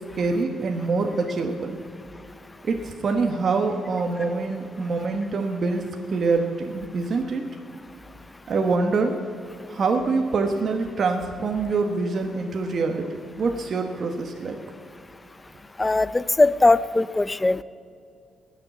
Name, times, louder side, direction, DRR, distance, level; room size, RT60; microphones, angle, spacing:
voice 1, 0.1-1.8 2.6-7.4 8.5-9.2 9.7-13.1 13.4-14.6, right 4 dB, 50° right, 4 dB, 1.2 m, -25 dB
voice 2, 15.8-17.6, left 2 dB, 15° left, 17 dB, 0.5 m, -20 dB
19.5 x 6.8 x 9.3 m, 2.4 s
cardioid pair, 90°, 0 cm